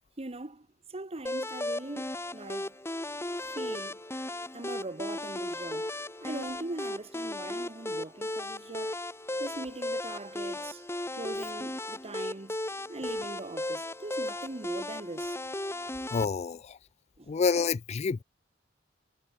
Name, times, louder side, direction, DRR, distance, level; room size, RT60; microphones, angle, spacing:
voice 1, 0.2-2.7 3.5-4.0 4.5-5.9 6.2-9.0 9.4-10.9 11.1-12.6 12.9-15.4 17.2-17.3, right 2 dB, 35° right, 1.1 m, -41 dB
sound 1, 1.3-16.3, left 1 dB, 15° left, 1.5 m, -36 dB
voice 2, 16.1-16.8 17.3-18.2, left 5 dB, 35° left, 0.4 m, -28 dB
head